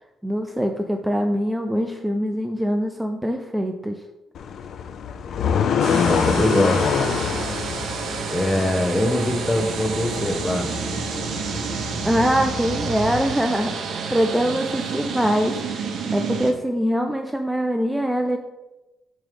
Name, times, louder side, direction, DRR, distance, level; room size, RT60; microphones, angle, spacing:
voice 1, 0.2-4.0 12.0-15.6 16.1-18.4, equal, 5° right, 5 dB, 0.4 m, -23 dB
sound 1, 4.4-13.3, left 7 dB, 65° left, 0.5 m, -27 dB
sound 2, 5.8-16.5, right 5 dB, 65° right, 0.8 m, -29 dB
voice 2, 6.0-6.9 8.3-10.7, left 1 dB, 20° left, 5 dB, 0.9 m, -22 dB
7.3 x 3.1 x 5.0 m, 1.0 s
cardioid pair, 90°, 0 cm